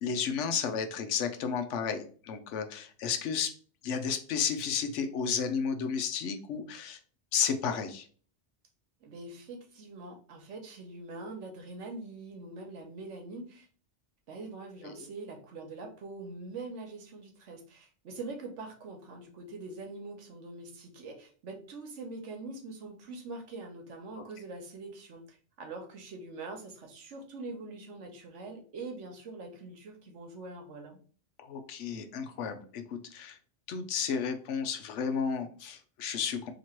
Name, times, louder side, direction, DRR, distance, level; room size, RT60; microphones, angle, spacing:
voice 1, 0.0-3.5 3.8-7.0 7.3-8.0 14.8-15.1 31.4-33.4 33.7-36.5, left 6 dB, 85° left, 7 dB, 1.0 m, -32 dB
voice 2, 9.0-13.7 14.3-31.0, right 3 dB, 80° right, 3 dB, 1.2 m, -43 dB
3.0 x 2.9 x 4.3 m, 0.43 s
omnidirectional pair, 1.2 m